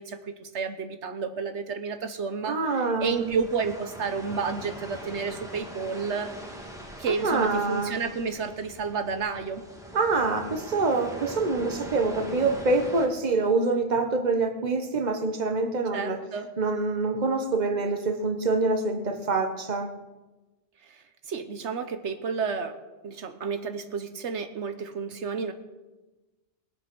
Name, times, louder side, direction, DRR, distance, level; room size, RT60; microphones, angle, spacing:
voice 1, 0.0-6.3 7.0-9.6 15.9-16.5 20.8-22.8 23.0-25.5, right 5 dB, 80° right, 8 dB, 1.2 m, -31 dB
voice 2, 2.5-3.4 7.1-8.0 9.9-16.2 16.6-19.9, right 3 dB, 40° right, 6 dB, 1.3 m, -26 dB
sound 1, 3.0-13.1, equal, 5° right, 2.0 m, -42 dB
20.5 x 8.3 x 6.1 m, 1.1 s
omnidirectional pair, 1.2 m